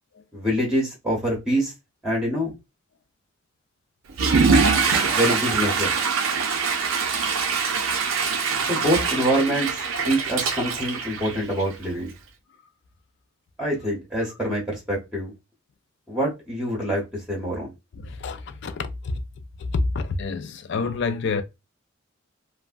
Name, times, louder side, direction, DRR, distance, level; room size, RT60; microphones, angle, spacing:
voice 1, 0.3-1.7 2.0-2.5 5.1-5.9 8.7-12.1 13.6-15.3 16.1-17.0 17.3-17.7, equal, 5° right, 0.8 m, -25 dB
Water / Toilet flush, 4.1-11.8, right 5 dB, 90° right, 0.5 m, -23 dB
voice 2, 17.9-19.2 19.6-21.4, left 3 dB, 60° left, 0.4 m, -28 dB
3.3 x 2.1 x 2.4 m
head